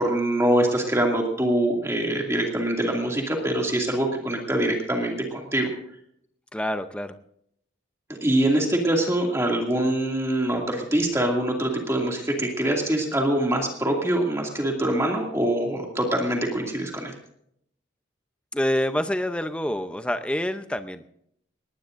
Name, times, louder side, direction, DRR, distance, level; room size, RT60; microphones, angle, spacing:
voice 1, 0.0-5.7 8.1-17.1, right 1 dB, 15° right, 0 dB, 2.4 m, -24 dB
voice 2, 6.5-7.2 18.5-21.0, left 1 dB, 5° left, 9 dB, 0.6 m, -27 dB
19.5 x 19.0 x 2.6 m, 0.71 s
head